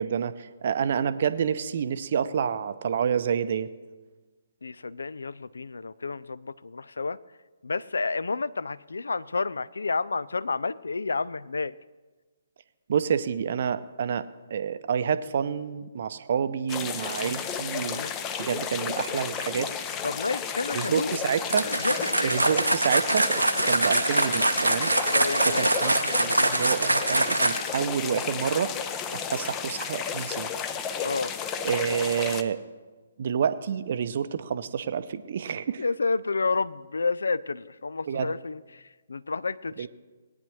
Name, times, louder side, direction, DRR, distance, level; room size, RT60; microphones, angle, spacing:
voice 1, 0.0-3.7 12.9-18.0 18.4-19.7 20.7-21.7 22.2-24.9 25.4-28.7 29.1-30.5 31.6-32.6 33.2-35.8 38.1-38.3 39.8-39.9, right 7 dB, 50° right, 12 dB, 0.6 m, -28 dB
voice 2, 4.6-7.2 7.6-11.7 17.0-17.3 17.8-18.1 20.0-21.2 21.6-22.4 23.6-23.7 25.1-25.7 31.0-31.4 35.8-39.9, left 4 dB, 70° left, 17 dB, 0.4 m, -30 dB
sound 1, 16.7-32.4, left 7 dB, 20° left, 0.6 m, -33 dB
sound 2, 21.5-27.8, right 2 dB, 85° right, 0.7 m, -24 dB
19.0 x 9.4 x 3.2 m, 1.3 s
figure-of-eight pair, 135°, 0 cm